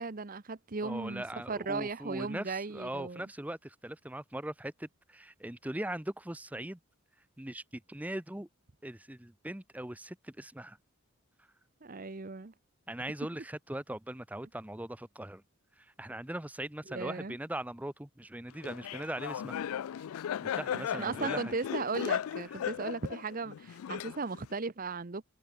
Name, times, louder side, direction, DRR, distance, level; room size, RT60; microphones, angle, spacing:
voice 1, 0.0-3.3 11.8-12.5 16.9-17.4 20.7-25.2, right 4 dB, 40° right, 0.8 m, -37 dB
voice 2, 0.8-6.8 7.4-8.5 8.8-10.8 12.9-15.4 15.8-19.6 20.4-21.6 22.5-22.6, right 1 dB, 5° right, 0.6 m, -40 dB
Laughter, 18.6-24.5, left 9 dB, 75° left, 0.3 m, -36 dB
head